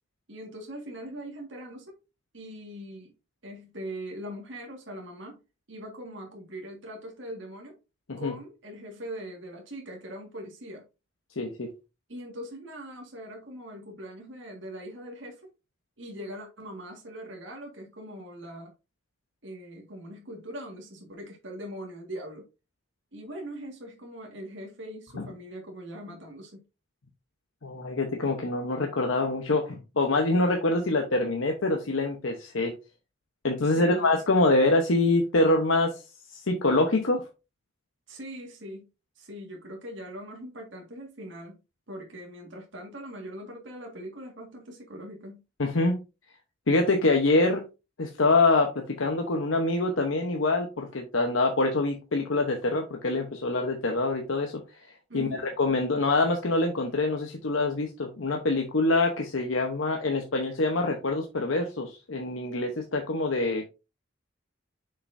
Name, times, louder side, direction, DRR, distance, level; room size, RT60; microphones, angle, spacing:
voice 1, 0.3-1.9 2.3-3.1 3.4-5.4 5.7-7.8 8.2-10.8 12.1-15.4 16.0-18.7 19.4-22.4 23.1-26.6 33.6-34.2 38.1-38.9 39.2-41.6 41.9-45.4 55.1-55.5, equal, 65° right, 1.8 m, -41 dB
voice 2, 11.4-11.7 25.2-25.3 27.6-32.7 33.4-35.9 36.3-37.2 45.6-46.0 46.7-47.6 48.0-54.6 55.1-55.3 55.6-63.6, left 2 dB, 80° left, 0.9 m, -25 dB
6.5 x 5.8 x 2.6 m
head